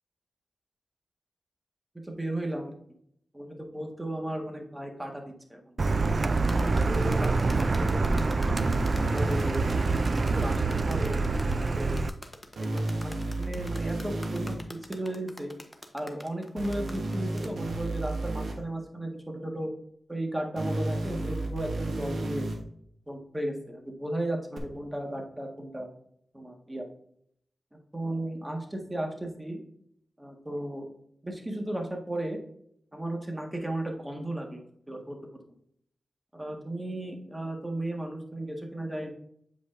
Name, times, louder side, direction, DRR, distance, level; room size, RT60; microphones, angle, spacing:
voice 1, 2.0-2.7 3.3-5.7 6.8-8.0 9.1-9.6 10.3-12.0 12.7-15.5 15.9-19.7 20.1-22.5 23.1-25.9 26.3-26.9 27.9-29.6 30.2-30.9 31.2-32.4 32.9-35.2 36.3-39.1, right 1 dB, 15° right, 2 dB, 1.5 m, -35 dB
Car, 5.8-12.1, right 3 dB, 55° right, 0.3 m, -26 dB
sound 1, 6.5-17.5, left 1 dB, 10° left, 1.0 m, -46 dB
sound 2, 8.6-10.5 12.6-14.6 16.6-18.5 20.6-22.6 24.6-24.7, right 2 dB, 85° right, 1.1 m, -32 dB
8.1 x 5.1 x 2.6 m, 0.69 s
cardioid pair, 65°, 0 cm